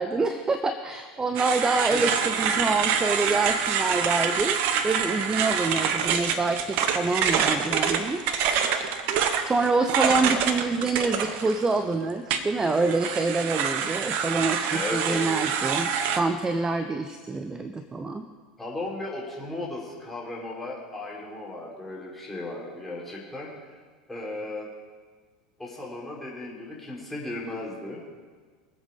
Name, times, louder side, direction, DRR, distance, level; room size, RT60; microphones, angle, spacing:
voice 1, 0.0-4.6 4.8-8.2 9.4-15.9 16.2-18.2, right 3 dB, 15° right, 8 dB, 0.9 m, -26 dB
sound 1, 1.4-11.8 12.3-16.2, right 7 dB, 45° right, 1.2 m, -26 dB
voice 2, 14.7-15.4 18.6-23.5 24.1-24.7 25.6-28.0, left 2 dB, 5° left, -5 dB, 5.1 m, -35 dB
23.5 x 8.1 x 5.3 m, 1.5 s
figure-of-eight pair, 80°, 4 cm